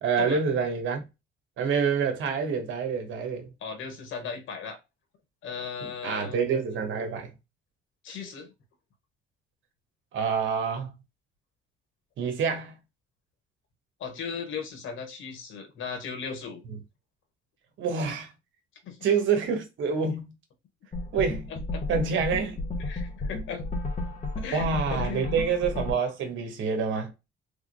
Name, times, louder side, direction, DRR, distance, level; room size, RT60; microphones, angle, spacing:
voice 1, 0.0-1.0 1.6-3.5 6.0-7.3 10.1-10.9 12.2-12.8 16.7-16.8 17.8-18.3 19.0-20.3 21.1-21.5 21.9-22.6 24.5-27.1, right 5 dB, 75° right, 1.5 m, -27 dB
voice 2, 3.6-4.8 5.4-6.5 8.0-8.5 14.0-16.6 18.8-19.1 21.5-22.0 22.8-23.6 24.4-24.6 24.9-25.4, left 6 dB, 80° left, 1.5 m, -37 dB
sound 1, 20.9-25.9, left 2 dB, 35° left, 1.3 m, -33 dB
3.7 x 3.5 x 2.3 m
cardioid pair, 90°, 20 cm